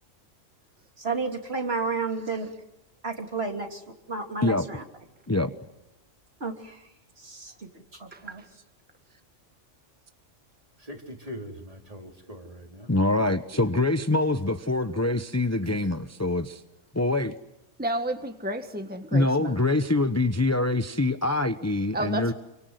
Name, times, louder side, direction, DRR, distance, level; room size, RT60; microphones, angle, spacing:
voice 1, 1.0-2.5 3.0-4.8 6.4-6.8 7.2-7.7 8.0-8.4, right 4 dB, 50° right, 3 dB, 3.5 m, -32 dB
voice 2, 10.8-12.9 15.6-15.8, equal, 30° right, 3 dB, 3.8 m, -41 dB
voice 3, 12.9-16.6 16.9-17.3 19.1-22.3, left 2 dB, 15° left, 9 dB, 0.9 m, -24 dB
voice 4, 17.8-19.6 21.9-22.3, right 1 dB, 5° right, 6 dB, 1.6 m, -31 dB
29.0 x 25.0 x 7.9 m, 0.92 s
omnidirectional pair, 1.3 m